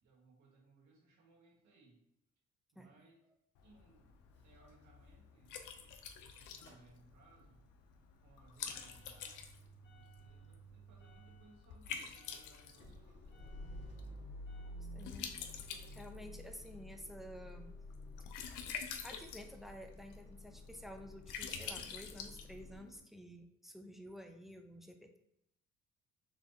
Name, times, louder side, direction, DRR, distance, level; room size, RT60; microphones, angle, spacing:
voice 1, 0.0-2.0 2.7-3.2 3.6-4.1 4.4-5.6 6.2-7.7 8.2-9.4 9.9-14.3, right 3 dB, 70° right, -2 dB, 1.6 m, -65 dB
Liquid, 3.6-23.0, left 7 dB, 90° left, 0.6 m, -49 dB
Motor vehicle (road) / Engine starting / Idling, 4.3-7.5 7.8-22.8, left 1 dB, 35° left, 1.6 m, -53 dB
voice 2, 14.9-15.3 15.9-17.8 19.0-25.2, equal, ahead, 5 dB, 0.5 m, -51 dB
4.5 x 3.4 x 2.7 m, 0.81 s
cardioid pair, 90°, 30 cm